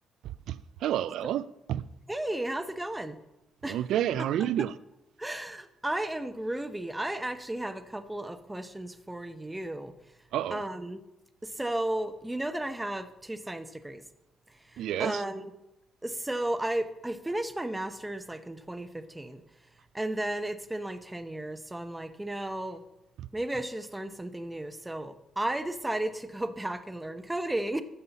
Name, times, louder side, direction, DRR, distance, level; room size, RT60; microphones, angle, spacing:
voice 1, 0.2-1.4 1.7-1.8 3.6-4.8 10.3-10.6 14.8-15.2 23.2-23.3, right 11 dB, 80° right, 0.3 m, -30 dB
voice 2, 2.1-3.2 3.6-3.8 5.2-9.9 10.5-11.0 11.4-14.0 14.7-15.5 16.0-19.4 19.9-22.8 23.3-27.8, right 1 dB, 10° right, 0.7 m, -34 dB
13.5 x 5.5 x 4.0 m
cardioid pair, 90°, 0 cm